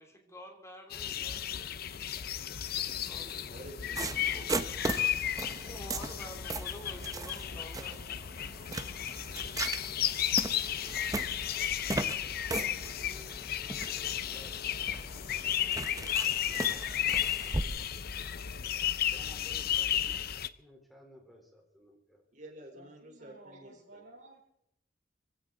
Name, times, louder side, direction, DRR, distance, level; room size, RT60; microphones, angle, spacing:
voice 1, 0.0-1.7 3.0-3.6 4.3-5.2 5.6-8.2, equal, 15° left, 2 dB, 3.1 m, -49 dB
sound 1, 0.9-20.5, left 10 dB, 55° left, 0.6 m, -34 dB
voice 2, 3.5-4.5 22.3-24.0, right 1 dB, 45° right, 1 dB, 4.0 m, -50 dB
sound 2, 4.0-17.6, right 2 dB, 20° right, 0.7 m, -38 dB
voice 3, 12.8-14.6 16.4-16.9 19.1-20.2 20.6-22.2, equal, ahead, 0 dB, 3.8 m, -57 dB
voice 4, 22.7-24.5, right 2 dB, 70° right, -5 dB, 4.2 m, -55 dB
23.0 x 16.0 x 3.9 m, 0.78 s
head